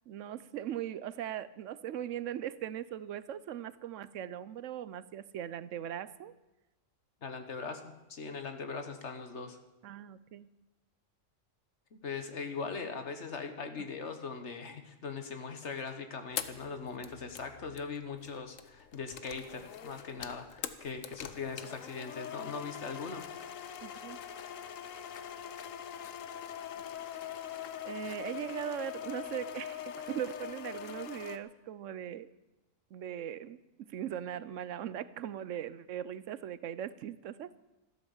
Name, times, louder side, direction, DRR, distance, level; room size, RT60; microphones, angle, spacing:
voice 1, 0.1-6.3 9.8-10.5 23.8-24.2 27.8-32.3 32.9-37.6, right 10 dB, 75° right, 16 dB, 1.0 m, -39 dB
voice 2, 7.2-9.6 11.9-23.2, left 5 dB, 65° left, 7 dB, 1.7 m, -40 dB
sound 1, 16.3-31.4, left 9 dB, 85° left, 1.2 m, -43 dB
13.5 x 12.5 x 7.2 m, 1.0 s
omnidirectional pair, 1.3 m